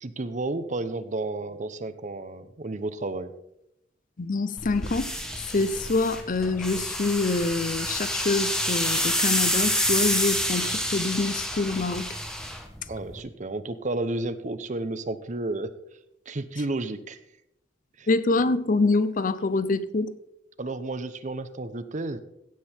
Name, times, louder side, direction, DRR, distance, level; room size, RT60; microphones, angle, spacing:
voice 1, 0.0-3.3 12.9-15.7 16.3-17.2 18.0-18.1 20.6-22.2, right 2 dB, 40° right, 0.8 m, -32 dB
voice 2, 4.2-5.2 5.5-12.2 18.1-20.1, left 3 dB, 45° left, 0.6 m, -26 dB
sound 1, 4.6-13.2, equal, 5° left, 1.4 m, -28 dB
16.5 x 7.6 x 4.4 m
head